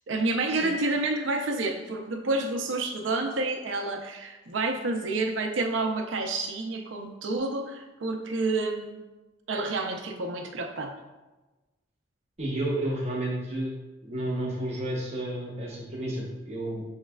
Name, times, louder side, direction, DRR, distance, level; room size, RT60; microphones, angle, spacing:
voice 1, 0.1-9.0 9.5-11.0, right 2 dB, 75° right, 3 dB, 0.6 m, -29 dB
voice 2, 12.4-13.7 14.0-16.8, right 1 dB, 35° right, -3 dB, 0.9 m, -31 dB
6.4 x 3.2 x 2.3 m, 1.1 s
head